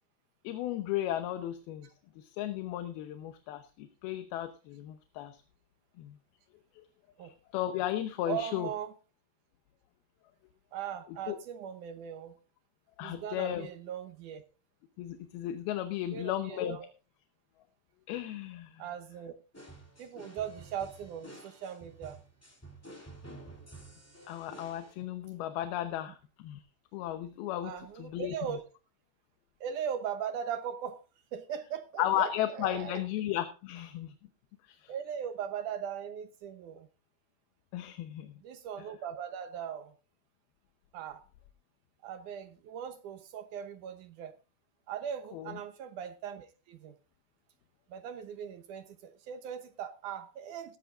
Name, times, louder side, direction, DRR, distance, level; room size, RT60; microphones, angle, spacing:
voice 1, 0.4-1.9 2.2-5.4 6.0-6.1 7.2-8.7 11.3-11.4 13.0-13.7 15.0-16.8 18.1-18.8 24.3-26.6 26.9-27.7 28.0-28.4 32.0-34.1 34.7-34.9 37.7-38.3 45.3-45.6, left 12 dB, 75° left, 8 dB, 2.7 m, -35 dB
voice 2, 8.3-8.9 10.7-12.4 13.0-14.4 16.1-16.9 18.8-19.3 20.0-22.2 27.6-28.6 29.6-31.0 31.3-33.0 34.9-36.9 38.4-39.9 40.9-41.2 42.0-44.3 44.9-47.0 47.9-50.8, right 8 dB, 70° right, 8 dB, 2.0 m, -39 dB
sound 1, 19.5-24.9, right 2 dB, 5° left, 2.0 m, -50 dB
17.5 x 13.0 x 2.5 m, 0.32 s
omnidirectional pair, 4.6 m